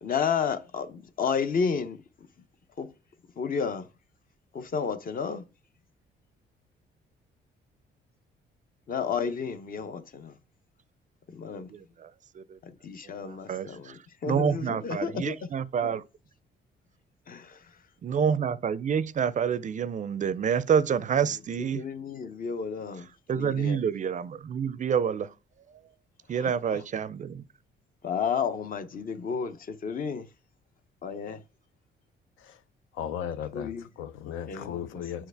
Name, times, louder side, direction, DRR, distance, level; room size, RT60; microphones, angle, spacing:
voice 1, 0.0-2.0 2.8-2.9 3.4-3.9 4.5-5.4 8.9-10.4 11.3-11.7 12.6-15.5 15.8-15.9 17.3-17.7 21.2-23.8 26.3-26.8 28.0-30.3 31.0-31.4 33.5-33.9 34.5-35.3, left 6 dB, 45° left, 0.7 m, -32 dB
voice 2, 13.3-13.9 14.3-16.0 18.0-21.8 23.3-25.3 26.3-27.4, right 7 dB, 40° right, 0.4 m, -27 dB
voice 3, 32.9-35.3, left 9 dB, 90° left, 0.5 m, -36 dB
7.2 x 4.5 x 3.4 m
cardioid pair, 90°, 20 cm